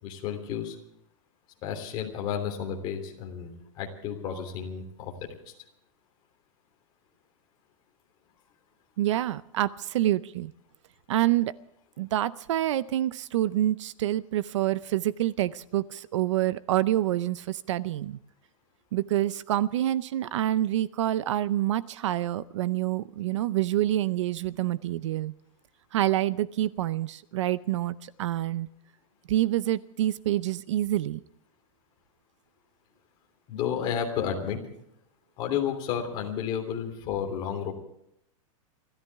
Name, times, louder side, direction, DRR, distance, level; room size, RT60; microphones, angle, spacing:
voice 1, 0.0-0.8 1.6-5.1 33.5-34.6 35.4-37.7, left 8 dB, 25° left, 2 dB, 3.2 m, -31 dB
voice 2, 9.0-10.5 11.1-11.6 12.0-18.2 18.9-25.3 25.9-28.7 29.3-31.2, right 13 dB, 55° right, 17 dB, 0.6 m, -27 dB
29.0 x 14.0 x 3.5 m, 0.73 s
supercardioid pair, 175°, 18 cm